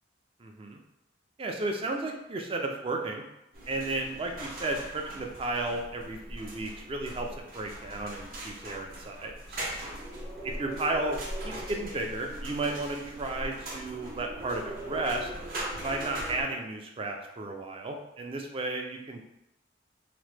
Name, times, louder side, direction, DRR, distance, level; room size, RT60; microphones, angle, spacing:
voice 1, 0.4-0.8 1.4-3.2 3.7-9.8 10.6-15.3 15.8-19.2, right 2 dB, 30° right, 3 dB, 0.3 m, -33 dB
sound 1, 3.5-16.4, right 1 dB, 50° right, 0.7 m, -40 dB
2.9 x 2.1 x 3.2 m, 0.87 s
head